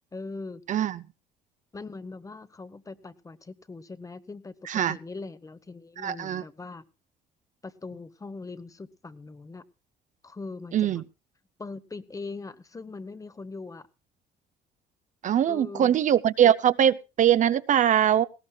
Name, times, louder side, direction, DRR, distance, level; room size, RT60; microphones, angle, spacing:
voice 1, 0.1-0.6 1.7-4.6 4.9-6.8 7.6-9.6 10.2-11.0 11.6-13.9 15.4-16.0, left 3 dB, 20° left, 1.0 m, -41 dB
voice 2, 0.7-1.0 4.7-5.0 6.0-6.4 10.7-11.0 15.2-18.3, right 10 dB, 50° right, 0.6 m, -22 dB
19.0 x 17.0 x 2.3 m
cardioid pair, 110°, 17 cm